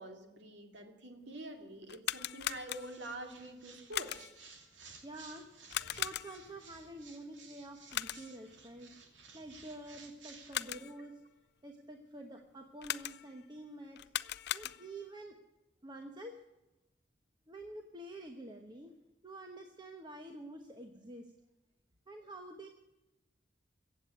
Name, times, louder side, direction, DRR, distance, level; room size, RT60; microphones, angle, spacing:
voice 1, 0.0-4.3 5.8-5.9 10.5-10.6, right 1 dB, 70° right, 4 dB, 2.5 m, -47 dB
sound 1, 1.8-3.2 3.9-4.5 5.7-6.6 7.9-8.5 10.3-11.1 12.8-13.5 14.0-15.1, left 13 dB, 60° left, 0.4 m, -39 dB
sound 2, 2.4-10.6, right 4 dB, 85° right, 2.6 m, -57 dB
voice 2, 5.0-5.5 5.8-9.0 9.3-11.2 11.6-14.1 14.5-15.4 15.8-16.4 17.5-18.9 19.2-21.3 22.1-22.7, right 1 dB, 25° right, 3 dB, 1.1 m, -48 dB
15.5 x 8.3 x 9.4 m, 0.97 s
head